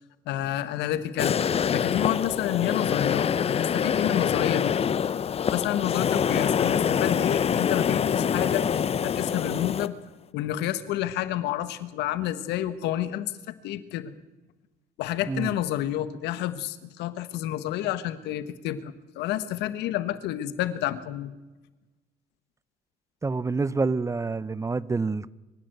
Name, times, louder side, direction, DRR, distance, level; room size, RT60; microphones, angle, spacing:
voice 1, 0.2-1.4 1.7-4.7 5.5-8.7 9.0-10.0 10.3-13.3 13.6-14.1 15.0-21.3, left 13 dB, 85° left, 13 dB, 1.5 m, -29 dB
sound 1, 1.2-9.9, left 7 dB, 35° left, 0.7 m, -25 dB
voice 2, 23.2-25.3, right 4 dB, 20° right, 19 dB, 0.7 m, -27 dB
23.5 x 15.5 x 7.9 m, 1.1 s
cardioid pair, 110°, 17 cm